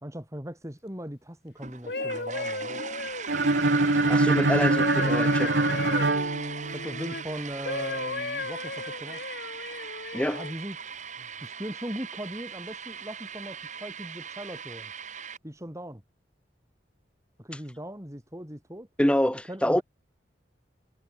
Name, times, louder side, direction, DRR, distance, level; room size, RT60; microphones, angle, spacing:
voice 1, 0.0-2.8 5.5-6.0 6.7-9.2 10.3-10.8 11.4-14.9 15.4-16.0 17.4-18.9 19.5-19.8, equal, 15° right, 4.3 m, -39 dB
sound 1, 1.6-15.4, right 7 dB, 40° right, 5.8 m, -40 dB
sound 2, 1.7-7.2 7.7-10.5 11.2-11.5, left 3 dB, 60° left, 4.3 m, -35 dB
sound 3, 3.3-7.2, right 2 dB, 65° right, 1.5 m, -24 dB
voice 2, 4.1-5.5 10.1-10.4 19.0-19.8, equal, 5° left, 1.3 m, -25 dB
head